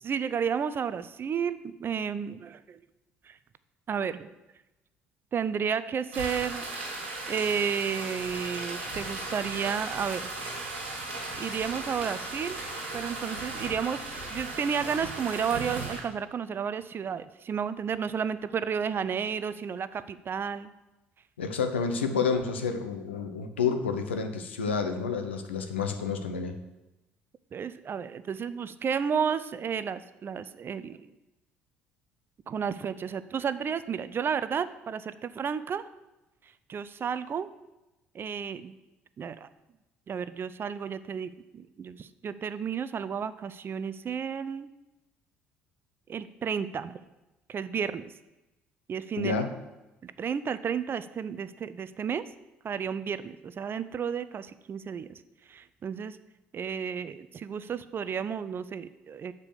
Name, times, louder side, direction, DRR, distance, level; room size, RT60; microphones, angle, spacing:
voice 1, 0.0-2.8 3.2-3.4 3.9-4.3 5.3-6.7 7.3-10.3 11.4-12.6 12.9-20.7 27.5-31.1 32.5-35.9 36.7-37.5 38.1-38.8 39.2-39.5 40.1-44.7 46.1-47.0 47.5-48.1 48.9-49.3 50.0-52.2 52.6-55.2 55.5-56.2 56.5-59.3, right 7 dB, 40° right, 14 dB, 0.5 m, -32 dB
sound 1, 6.1-16.0, right 2 dB, 80° right, 1.9 m, -36 dB
voice 2, 21.4-26.5 49.2-49.5, left 5 dB, 85° left, 6 dB, 0.7 m, -29 dB
6.7 x 4.9 x 6.7 m, 0.99 s
hypercardioid pair, 55°, 6 cm